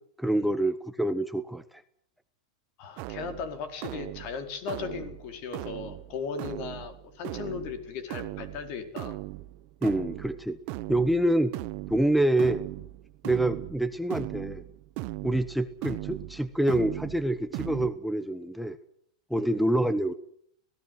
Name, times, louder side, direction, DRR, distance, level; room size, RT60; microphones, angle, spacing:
voice 1, 0.2-1.8 9.8-10.6 10.9-11.6 11.9-12.6 13.2-14.6 15.2-18.8 19.3-20.1, right 1 dB, ahead, 9 dB, 1.0 m, -26 dB
voice 2, 2.8-9.2 19.3-19.4, left 6 dB, 50° left, 8 dB, 4.5 m, -37 dB
sound 1, 3.0-17.9, right 20 dB, 50° right, 1.2 m, -39 dB
26.5 x 18.0 x 7.9 m, 0.65 s
supercardioid pair, 130°, 3 cm